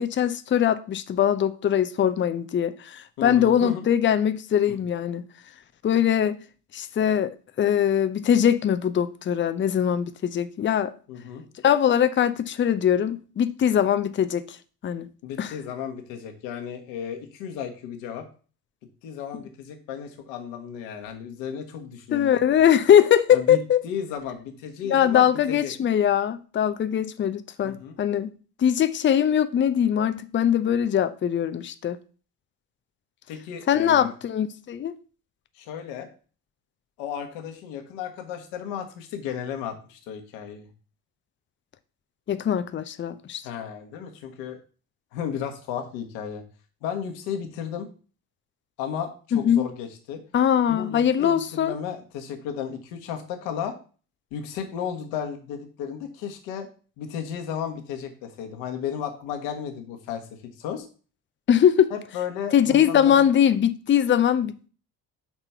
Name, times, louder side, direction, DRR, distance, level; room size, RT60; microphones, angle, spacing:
voice 1, 0.0-5.2 5.8-6.4 6.7-10.9 11.6-14.6 14.8-15.1 15.4-15.5 22.1-23.8 24.8-28.3 28.6-32.0 33.7-34.9 42.3-43.4 49.3-49.7 50.3-51.7 61.5-61.9 62.5-64.7, left 9 dB, 25° left, 0.6 m, -21 dB
voice 2, 3.2-3.9 4.7-4.8 11.1-11.4 15.2-18.3 19.0-22.3 23.3-25.7 27.6-27.9 33.3-34.1 35.5-36.1 37.0-40.7 43.4-44.6 45.1-46.4 46.8-47.9 48.8-50.2 50.7-53.7 54.3-56.7 57.0-60.2 60.6-60.9 61.9-63.2, left 8 dB, 65° left, 1.5 m, -34 dB
6.1 x 4.4 x 5.6 m
figure-of-eight pair, 55°, 47 cm